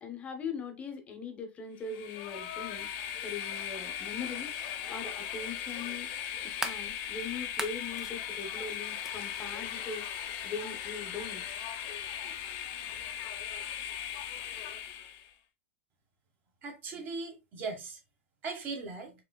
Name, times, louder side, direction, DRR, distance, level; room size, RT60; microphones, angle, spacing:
voice 1, 0.0-2.9 3.2-4.5 4.9-6.1 6.4-10.1 10.4-11.4, left 5 dB, 20° left, 0.9 m, -40 dB
Train, 1.8-15.3, left 9 dB, 40° left, 0.7 m, -38 dB
sound 1, 5.8-6.9 7.4-8.1 9.0-9.1, right 2 dB, 5° right, 0.5 m, -38 dB
voice 2, 16.6-18.0 18.4-19.1, right 4 dB, 25° right, 1.5 m, -38 dB
4.8 x 3.6 x 2.2 m
supercardioid pair, 145°, 7 cm